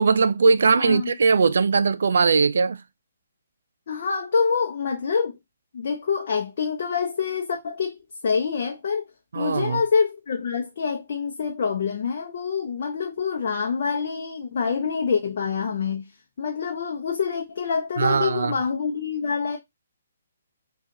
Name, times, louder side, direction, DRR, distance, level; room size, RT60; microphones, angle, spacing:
voice 1, 0.0-2.8 9.3-9.8 18.0-18.5, right 4 dB, 70° right, 0.3 m, -20 dB
voice 2, 0.8-1.1 3.9-5.4 5.7-9.1 9.3-16.0 16.4-19.6, left 5 dB, 55° left, 0.7 m, -26 dB
3.7 x 2.4 x 2.7 m
hypercardioid pair, 140°, 0 cm